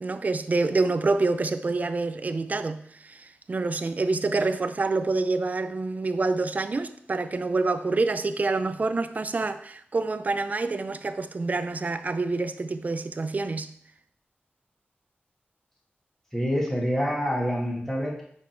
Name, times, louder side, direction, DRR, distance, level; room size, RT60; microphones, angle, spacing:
voice 1, 0.0-13.7, right 3 dB, 40° right, 0.4 m, -27 dB
voice 2, 16.3-18.2, equal, 10° left, 1.7 m, -26 dB
6.2 x 4.8 x 4.5 m
wide cardioid pair, 95°, 4 cm